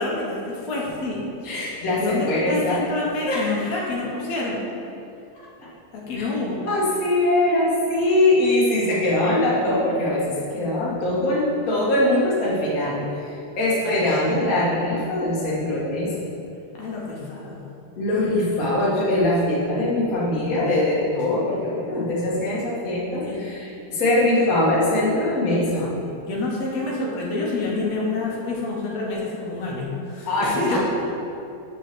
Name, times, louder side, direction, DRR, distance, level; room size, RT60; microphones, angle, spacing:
voice 1, 0.0-1.3 2.0-4.6 5.9-6.6 13.8-14.5 16.7-17.6 23.2-23.4 26.2-30.8, left 3 dB, 65° left, -3 dB, 1.8 m, -28 dB
voice 2, 1.4-2.8 3.3-3.8 5.6-5.7 6.2-6.3 6.6-16.1 17.9-25.9 30.2-30.8, left 1 dB, 50° left, -7 dB, 1.0 m, -22 dB
6.0 x 5.3 x 6.1 m, 2.7 s
omnidirectional pair, 4.3 m